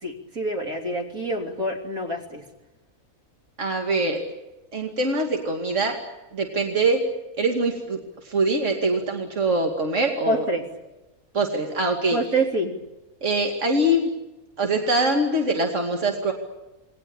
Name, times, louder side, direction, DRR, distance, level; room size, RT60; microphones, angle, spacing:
voice 1, 0.0-2.4 10.3-10.6 12.1-12.7, right 1 dB, 70° right, 1 dB, 3.8 m, -26 dB
voice 2, 3.6-4.2 4.7-6.0 6.3-7.0 7.4-8.0 8.2-10.4 11.3-12.2 13.2-14.1 14.6-16.3, right 2 dB, 55° right, 2 dB, 2.9 m, -23 dB
28.0 x 20.5 x 8.9 m, 1.0 s
omnidirectional pair, 1.5 m